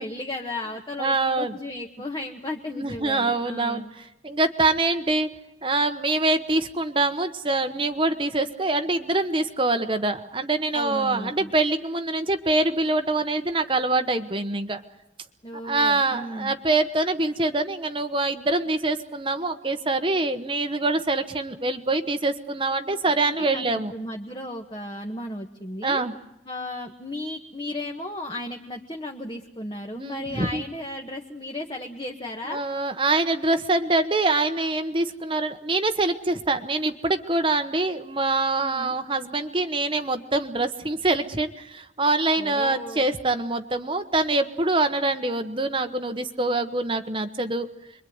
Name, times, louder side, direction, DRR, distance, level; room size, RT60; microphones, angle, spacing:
voice 1, 0.0-3.9 10.7-11.5 15.4-16.5 23.2-23.6 23.9-26.0 26.4-32.6 38.6-38.9 42.4-43.1, left 1 dB, 25° left, 2 dB, 1.7 m, -35 dB
voice 2, 1.0-1.5 2.7-5.3 5.6-14.8 15.6-23.9 25.8-26.1 30.0-30.6 32.5-47.7, right 2 dB, 30° right, 7 dB, 1.1 m, -25 dB
27.0 x 23.0 x 9.5 m, 0.85 s
head